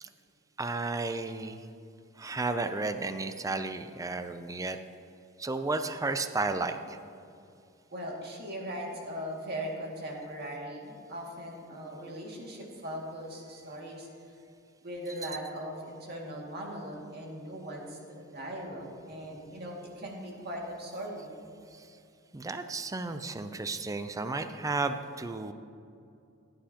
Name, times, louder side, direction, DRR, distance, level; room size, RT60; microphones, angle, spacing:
voice 1, 0.6-1.6 2.2-4.8 5.4-7.0 22.3-25.5, right 3 dB, 15° right, 9 dB, 0.4 m, -33 dB
voice 2, 7.9-14.1 14.8-21.4, equal, 50° right, -2 dB, 2.2 m, -39 dB
16.5 x 10.5 x 2.9 m, 2.5 s
head